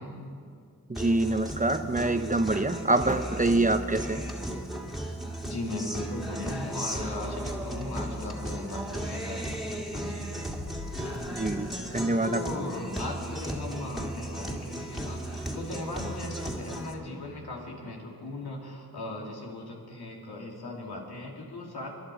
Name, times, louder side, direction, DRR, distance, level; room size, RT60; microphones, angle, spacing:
Guitar, 0.9-16.9, right 1 dB, ahead, 2.2 m, -35 dB
voice 1, 0.9-4.2 11.3-12.4, right 2 dB, 20° right, 9 dB, 0.8 m, -26 dB
voice 2, 5.4-10.3 12.2-21.9, left 2 dB, 85° left, -2 dB, 2.6 m, -38 dB
Fire, 10.4-12.8, left 5 dB, 45° left, 1.1 m, -43 dB
24.5 x 10.5 x 4.8 m, 2.3 s
cardioid pair, 45°, 37 cm